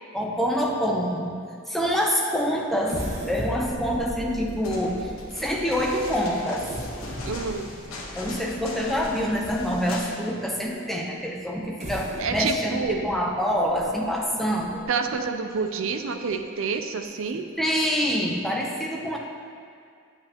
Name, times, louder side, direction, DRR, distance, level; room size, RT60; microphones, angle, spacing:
voice 1, 0.1-6.7 8.2-14.8 17.6-19.2, equal, ahead, -2 dB, 0.7 m, -26 dB
sound 1, 2.9-10.0 10.6-10.7 11.6-15.1 15.6-15.7 16.1-16.3, equal, 35° right, 1.5 m, -38 dB
sound 2, 4.5-10.2 10.4-10.5, left 2 dB, 80° left, 1.2 m, -40 dB
voice 2, 7.3-7.7 12.2-13.1 14.9-17.5, right 5 dB, 70° right, 7 dB, 0.5 m, -28 dB
8.9 x 8.5 x 3.0 m, 2.3 s
head